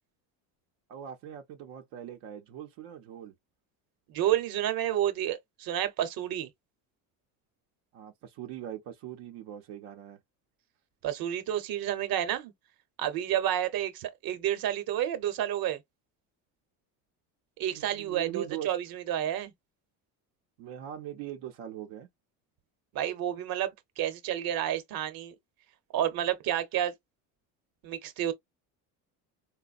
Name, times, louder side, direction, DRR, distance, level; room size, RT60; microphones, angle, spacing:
voice 1, 0.9-3.3 7.9-10.2 17.7-18.7 20.6-22.1, right 11 dB, 80° right, 0.7 m, -41 dB
voice 2, 4.1-6.5 11.0-12.5 13.0-15.8 17.6-19.5 22.9-25.3 25.9-26.9 27.8-28.3, right 11 dB, 55° right, 0.9 m, -30 dB
4.0 x 2.2 x 2.4 m
supercardioid pair, 95°, 42 cm